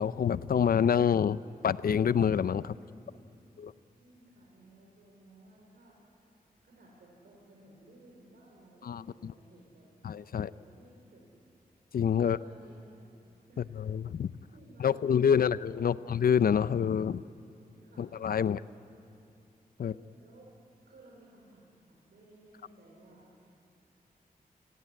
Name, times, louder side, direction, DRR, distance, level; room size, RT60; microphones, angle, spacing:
voice 1, 0.0-1.4 1.6-2.7 3.6-3.7 8.8-9.3 10.0-10.5 11.9-12.4 13.8-14.3 14.8-17.2 18.0-18.6 19.8-19.9, left 7 dB, 70° left, 16 dB, 0.5 m, -27 dB
voice 2, 2.6-3.4 4.0-6.2 6.6-11.3 12.2-13.1 13.5-13.6 14.5-16.0 17.5-18.8 19.8-20.5 20.8-23.5, right 1 dB, 85° right, -4 dB, 5.3 m, -58 dB
28.5 x 18.5 x 9.9 m, 2.6 s
wide cardioid pair, 155°, 16 cm